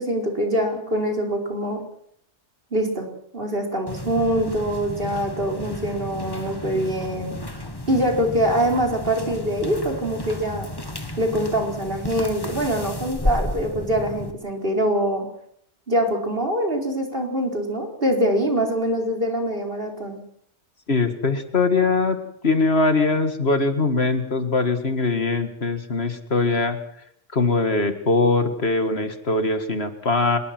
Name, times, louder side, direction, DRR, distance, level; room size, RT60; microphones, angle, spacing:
voice 1, 0.0-1.8 2.7-3.1 3.3-7.3 7.9-10.7 11.2-15.3 15.9-20.2, equal, 50° right, 2 dB, 4.8 m, -24 dB
sound 1, 3.9-14.3, left 1 dB, 20° left, 1.8 m, -32 dB
voice 2, 20.9-22.2 22.4-26.8 27.3-30.4, left 3 dB, 60° left, 9 dB, 2.2 m, -21 dB
25.5 x 21.5 x 6.1 m, 0.68 s
omnidirectional pair, 1.2 m